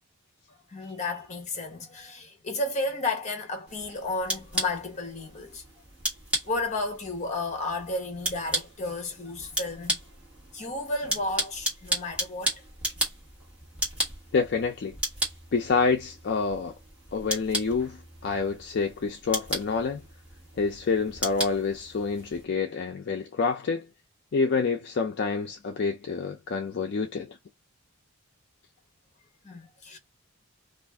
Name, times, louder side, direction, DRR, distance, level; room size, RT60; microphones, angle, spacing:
voice 1, 0.5-5.6 6.4-10.0 10.5-12.7 29.4-30.0, left 2 dB, 30° left, 0.9 m, -32 dB
sound 1, 3.7-22.4, right 1 dB, 5° right, 1.2 m, -35 dB
voice 2, 14.3-15.0 15.5-16.8 17.1-20.0 20.6-23.9 24.3-27.4, left 4 dB, 50° left, 0.4 m, -27 dB
2.5 x 2.4 x 3.3 m
head